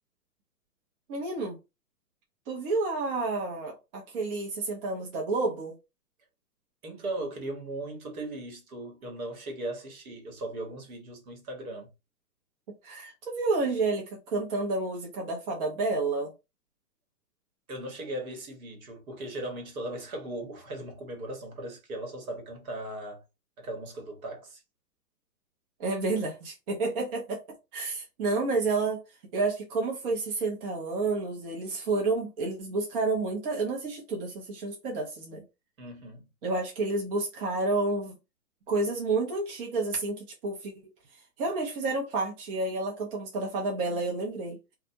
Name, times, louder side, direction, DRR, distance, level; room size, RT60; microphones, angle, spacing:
voice 1, 1.1-1.6 2.5-5.7 12.8-16.3 25.8-27.4 27.7-29.0 29.3-35.4 36.4-38.1 38.7-40.7 41.1-44.6, right 3 dB, 35° right, 0.7 m, -30 dB
voice 2, 6.8-11.9 17.7-23.2 23.6-24.6 35.8-36.3, right 1 dB, 60° right, 1.3 m, -38 dB
2.4 x 2.1 x 2.7 m
hypercardioid pair, 130°, 47 cm